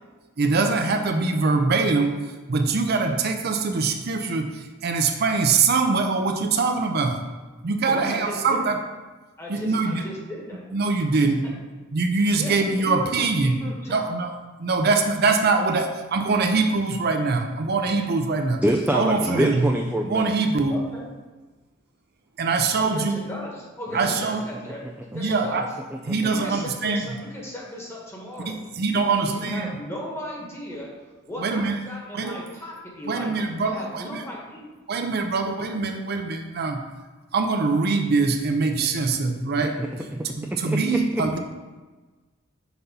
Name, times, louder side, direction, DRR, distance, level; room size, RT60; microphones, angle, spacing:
voice 1, 0.4-2.2 2.5-4.5 4.8-7.2 7.6-8.8 9.5-10.0 10.7-11.4 11.9-13.6 13.9-14.3 14.6-18.6 18.9-19.7 20.1-20.7 22.4-23.2 23.9-24.4 25.1-25.7 26.1-27.0 28.5-29.7 31.4-31.8 32.1-32.4 33.1-34.2 34.9-36.8 37.3-39.7 40.4-41.4, right 4 dB, 55° right, 5 dB, 0.6 m, -23 dB
voice 2, 7.9-8.7 9.4-10.6 12.4-13.1 13.4-14.0 19.2-19.4 20.7-21.1 22.8-24.9 25.1-25.6 26.3-28.6 29.0-30.9 31.2-34.7, equal, 15° left, -3 dB, 1.4 m, -36 dB
voice 3, 18.6-20.3 23.9-24.1 39.6-40.3 40.7-41.3, right 1 dB, 10° right, 1 dB, 0.4 m, -25 dB
6.0 x 4.1 x 5.4 m, 1.3 s
head